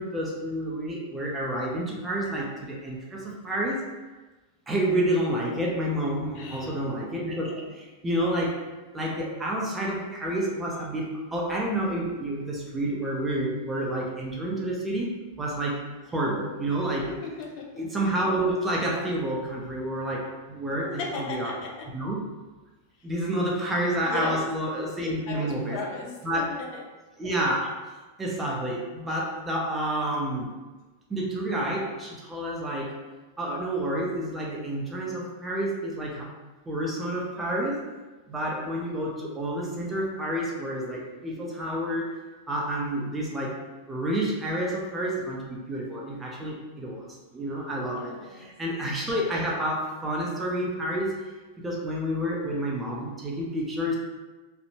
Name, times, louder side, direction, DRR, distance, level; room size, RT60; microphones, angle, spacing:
voice 1, 0.0-3.8 4.7-8.6 8.9-15.1 15.4-15.8 16.1-17.1 17.7-21.5 21.9-22.2 23.0-25.8 26.2-26.5 27.2-27.7 28.2-30.5 31.1-32.9 33.4-36.3 36.7-37.8 38.3-42.1 42.5-43.6 43.9-51.1 51.6-54.0, right 1 dB, 10° right, -3 dB, 0.5 m, -29 dB
voice 2, 6.3-6.7 17.0-17.8 20.8-21.9 23.0-23.1 24.0-24.4 25.3-26.8 47.9-48.5, left 3 dB, 45° left, -1 dB, 0.5 m, -36 dB
2.6 x 2.0 x 2.8 m, 1.2 s
supercardioid pair, 140°, 0 cm